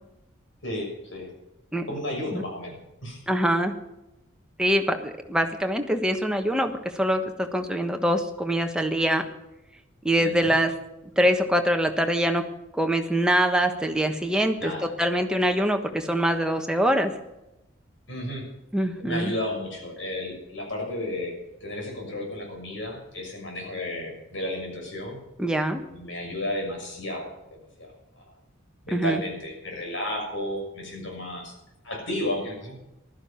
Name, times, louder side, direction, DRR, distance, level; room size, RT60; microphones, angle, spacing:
voice 1, 0.6-1.3 1.9-3.2 10.2-10.5 14.6-14.9 18.1-18.4 19.0-21.3 21.6-25.2 25.9-28.2 28.8-31.5 31.8-32.7, left 1 dB, 65° left, 0 dB, 6.5 m, -33 dB
voice 2, 3.3-3.7 4.6-9.2 10.0-10.7 11.2-12.4 12.7-14.7 15.0-17.1 18.7-19.3 25.4-25.8 28.9-29.2, equal, 5° right, 4 dB, 1.3 m, -24 dB
15.5 x 12.5 x 5.8 m, 0.92 s
head